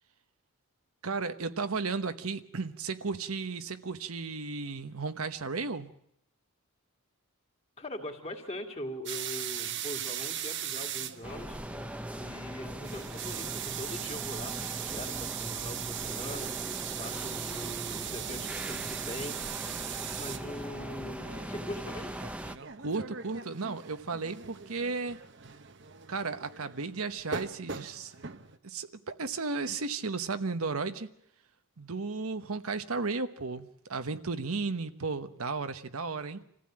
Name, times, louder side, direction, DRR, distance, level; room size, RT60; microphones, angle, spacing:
voice 1, 1.0-5.9 22.8-25.2 26.1-28.2 28.6-31.1 31.8-36.4, right 4 dB, 75° right, 9 dB, 1.1 m, -34 dB
voice 2, 7.8-11.6 12.2-16.5 17.0-19.4 20.2-22.1, left 1 dB, 30° left, 2 dB, 2.4 m, -41 dB
sound 1, 9.1-28.6, right 9 dB, 55° right, 1.0 m, -39 dB
sound 2, 11.2-22.6, right 1 dB, 5° right, 0.8 m, -40 dB
26.0 x 15.5 x 8.8 m, 0.74 s
head